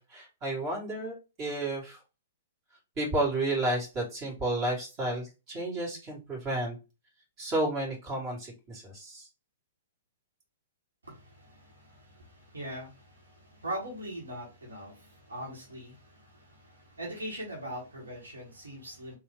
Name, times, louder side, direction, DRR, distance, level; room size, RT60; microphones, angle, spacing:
voice 1, 0.0-2.0 3.0-6.8 7.4-9.3, right 2 dB, 30° right, 2.4 m, -32 dB
voice 2, 11.0-19.1, right 1 dB, 80° right, 1.6 m, -41 dB
3.9 x 2.8 x 3.4 m
figure-of-eight pair, 115°, 0 cm